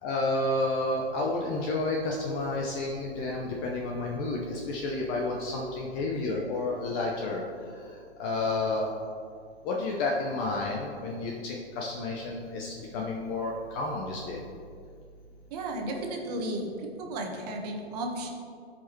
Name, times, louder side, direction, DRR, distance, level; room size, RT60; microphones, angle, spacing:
voice 1, 0.0-7.4 8.2-8.9 9.6-14.4, left 2 dB, 20° left, -1 dB, 0.5 m, -30 dB
voice 2, 15.5-18.3, right 1 dB, 35° right, 2 dB, 1.2 m, -34 dB
14.5 x 5.0 x 3.0 m, 2.2 s
hypercardioid pair, 140°, 33 cm